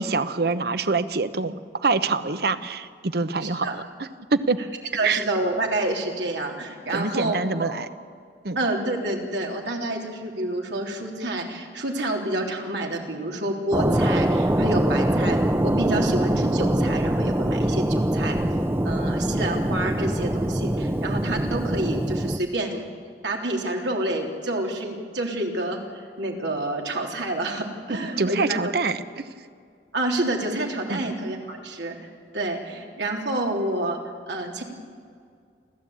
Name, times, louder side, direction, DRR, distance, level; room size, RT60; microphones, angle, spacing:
voice 1, 0.0-4.6 5.0-5.2 6.9-7.9 8.4-8.6 28.2-29.3 30.9-31.2, right 3 dB, 60° right, 12 dB, 1.0 m, -25 dB
voice 2, 3.4-3.7 4.9-7.7 8.5-18.4 18.8-22.9 23.2-25.8 26.2-28.6 29.9-34.0 34.3-34.6, right 1 dB, 90° right, 1 dB, 3.5 m, -28 dB
sound 1, 13.7-22.4, right 1 dB, 15° right, 0.6 m, -23 dB
29.5 x 14.0 x 8.8 m, 2.2 s
head